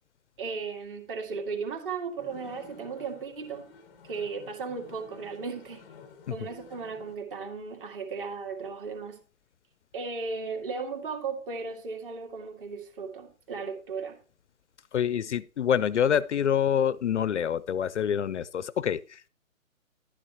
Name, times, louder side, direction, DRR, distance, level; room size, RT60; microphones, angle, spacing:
voice 1, 0.4-3.7 4.1-5.8 6.3-9.2 9.9-14.2, right 5 dB, 40° right, 2.3 m, -36 dB
sound 1, 2.2-7.2, left 4 dB, 5° left, 0.6 m, -51 dB
voice 2, 14.9-19.3, left 8 dB, 60° left, 0.5 m, -26 dB
11.5 x 9.9 x 2.9 m
hypercardioid pair, 150°, 41 cm